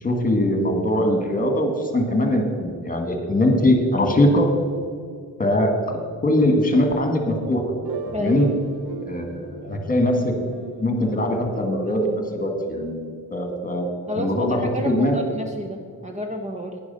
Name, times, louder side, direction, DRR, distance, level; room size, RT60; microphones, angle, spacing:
voice 1, 0.0-4.5 5.4-7.6 8.1-8.5 9.1-10.4 10.8-12.1 12.3-13.9 14.2-15.2, left 1 dB, 20° left, 4 dB, 1.8 m, -21 dB
sound 1, 7.8-12.4, right 5 dB, 85° right, 1.0 m, -37 dB
voice 2, 14.1-16.8, equal, 20° right, 3 dB, 0.8 m, -30 dB
11.0 x 9.7 x 5.5 m, 2.2 s
wide cardioid pair, 120°, 38 cm